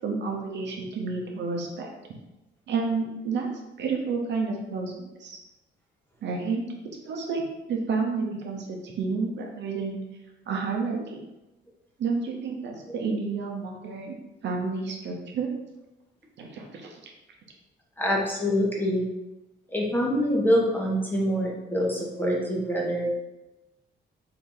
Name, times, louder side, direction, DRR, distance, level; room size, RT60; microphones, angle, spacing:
voice 1, 0.0-1.9 2.7-3.5 3.8-5.4 6.2-6.7 7.1-7.4 7.7-10.0 10.5-11.2 12.0-14.1 14.4-15.5 16.4-17.1, right 4 dB, 65° right, 1 dB, 0.8 m, -30 dB
voice 2, 18.0-19.0 19.7-23.1, equal, 10° left, -2 dB, 1.0 m, -25 dB
3.8 x 2.6 x 3.8 m, 0.99 s
cardioid pair, 90°, 20 cm